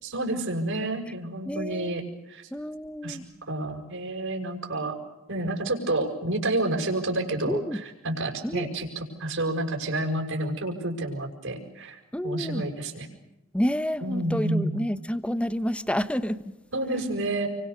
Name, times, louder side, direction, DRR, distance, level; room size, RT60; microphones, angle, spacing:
voice 1, 0.0-2.5 3.0-3.2 3.5-5.0 5.3-13.1 14.0-14.8 16.7-17.5, right 1 dB, 65° right, 1 dB, 6.3 m, -29 dB
voice 2, 1.5-2.0 2.5-3.2 7.5-7.8 8.4-8.7 12.1-12.7 13.5-16.5, equal, 5° left, 12 dB, 1.1 m, -29 dB
29.5 x 24.5 x 6.9 m, 0.93 s
head